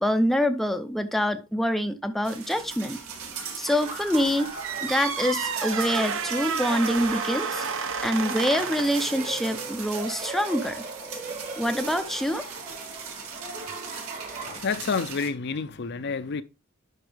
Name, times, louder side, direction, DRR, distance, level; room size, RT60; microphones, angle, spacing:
voice 1, 0.0-3.0 3.6-4.5 4.8-7.6 8.0-10.8 11.6-12.5, equal, ahead, 0.5 m, -25 dB
sound 1, 2.2-15.3, right 5 dB, 80° right, 2.1 m, -39 dB
Laughter, 3.7-14.6, right 3 dB, 35° right, 1.4 m, -39 dB
sound 2, 4.6-9.1, right 6 dB, 60° right, 0.9 m, -30 dB
voice 2, 14.4-16.4, left 5 dB, 50° left, 0.5 m, -29 dB
11.0 x 4.5 x 3.3 m
head